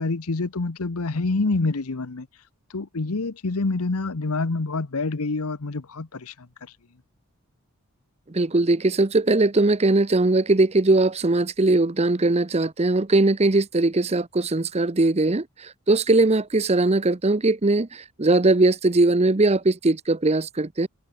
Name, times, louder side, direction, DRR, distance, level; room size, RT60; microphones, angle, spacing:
voice 1, 0.0-2.3 2.7-6.5, left 3 dB, 75° left, 1.0 m, -27 dB
voice 2, 8.3-20.9, right 2 dB, 30° right, 0.8 m, -20 dB
head